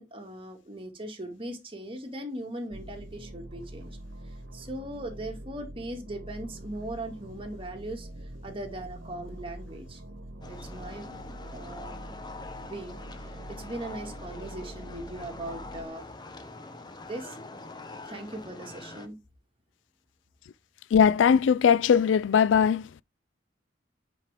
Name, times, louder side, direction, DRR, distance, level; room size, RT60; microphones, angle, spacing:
voice 1, 0.0-3.9 4.3-8.1 8.4-10.0 10.5-11.1 11.5-12.0 12.6-16.1 17.1-17.4 18.0-19.2, right 1 dB, 30° right, 2.1 m, -39 dB
sound 1, 2.7-15.9, right 1 dB, 85° right, 1.2 m, -44 dB
sound 2, 10.4-19.1, left 2 dB, 25° left, 0.9 m, -44 dB
voice 2, 20.9-22.8, left 7 dB, 85° left, 0.3 m, -20 dB
9.1 x 5.0 x 3.5 m
head